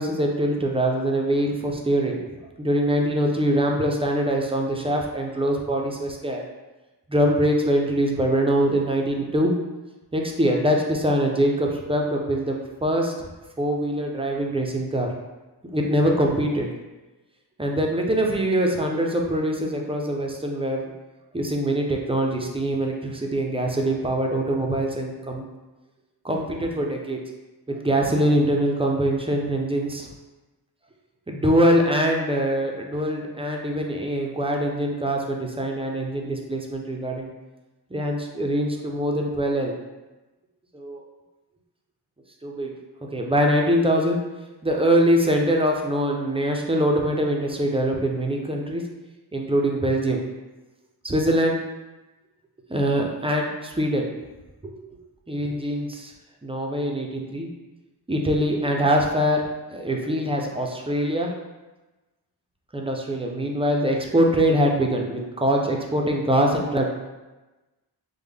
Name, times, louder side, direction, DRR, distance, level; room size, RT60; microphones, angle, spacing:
voice 1, 0.0-2.2 2.6-6.4 7.1-9.5 10.1-13.1 13.6-15.1 15.7-16.7 17.6-20.9 21.3-25.4 26.2-27.2 27.7-30.1 31.3-37.3 37.9-39.7 40.7-41.0 42.4-42.7 43.1-44.2 44.6-48.8 49.3-50.2 51.0-51.6 52.7-54.1 54.6-54.8 55.3-56.1 56.4-57.5 58.1-59.4 59.7-61.3 62.7-66.9, equal, 15° right, 0 dB, 0.3 m, -23 dB
3.4 x 2.0 x 3.4 m, 1.1 s
wide cardioid pair, 100°, 42 cm